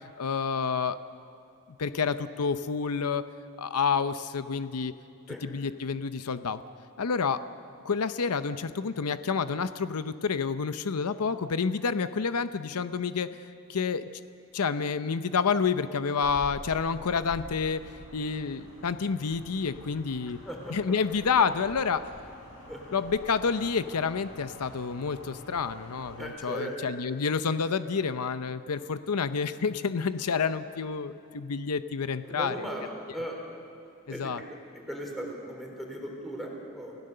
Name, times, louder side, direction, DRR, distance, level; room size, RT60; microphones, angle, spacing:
voice 1, 0.2-1.0 1.8-3.3 3.6-4.9 5.4-6.6 7.0-7.4 7.8-13.3 13.7-14.1 14.5-17.8 18.1-20.4 20.7-22.1 22.9-32.7 34.1-34.4, left 5 dB, 85° left, 12 dB, 0.6 m, -29 dB
sound 1, 16.2-26.3, left 1 dB, 65° left, 4.4 m, -47 dB
voice 2, 20.4-21.3 22.7-23.0 26.2-26.8 32.3-33.4 34.1-34.3 34.9-37.0, equal, ahead, -1 dB, 3.8 m, -38 dB
28.5 x 16.0 x 6.7 m, 2.6 s
head